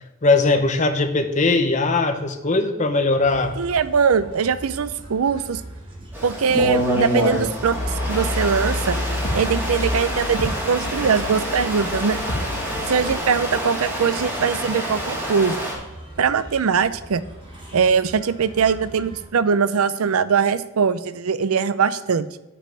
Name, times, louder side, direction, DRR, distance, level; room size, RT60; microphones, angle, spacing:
voice 1, 0.2-3.6, left 3 dB, 35° left, 7 dB, 0.8 m, -20 dB
sound 1, 3.2-19.2, right 1 dB, 25° right, 3.0 m, -41 dB
voice 2, 3.6-5.6 6.2-7.8 8.1-9.0 9.3-12.2 12.9-15.6 16.2-17.2 17.7-22.3, right 6 dB, 80° right, 14 dB, 0.5 m, -21 dB
Stream, 6.1-15.7, equal, 10° right, 2.7 m, -27 dB
sound 2, 7.4-13.2, left 1 dB, 55° left, 1.7 m, -29 dB
8.6 x 5.3 x 7.5 m, 0.95 s
head